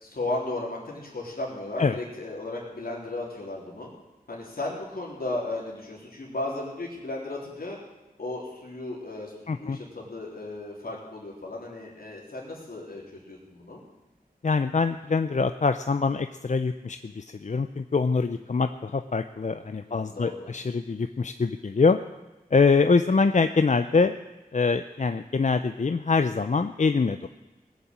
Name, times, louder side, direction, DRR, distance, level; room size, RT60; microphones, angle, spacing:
voice 1, 0.0-3.9 4.3-7.8 8.2-13.8 19.8-20.5 27.1-27.2, left 2 dB, 80° left, -4 dB, 3.6 m, -35 dB
voice 2, 9.5-9.8 14.4-22.0 22.5-24.2 24.5-27.3, left 4 dB, 50° left, 9 dB, 0.6 m, -24 dB
19.0 x 7.2 x 8.8 m, 1.1 s
wide cardioid pair, 75°, 15 cm